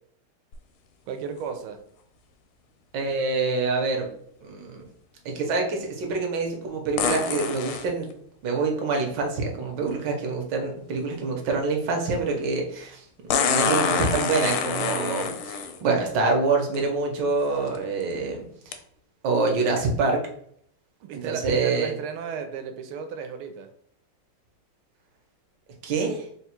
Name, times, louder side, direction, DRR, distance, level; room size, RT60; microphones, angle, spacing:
sound 1, 0.5-0.6 7.0-7.9 9.9-10.0 13.3-15.8 16.7-16.8 17.5-17.8 18.7-18.8, left 6 dB, 80° left, 1.4 m, -26 dB
voice 1, 1.1-1.8 21.0-23.7, right 6 dB, 80° right, 7 dB, 1.5 m, -34 dB
voice 2, 2.9-4.1 4.4-4.8 5.2-8.1 8.4-13.0 13.4-18.7 19.2-20.2 21.1-21.9 25.8-26.2, right 3 dB, 65° right, 2 dB, 1.3 m, -26 dB
3.9 x 2.3 x 4.3 m, 0.66 s
omnidirectional pair, 2.3 m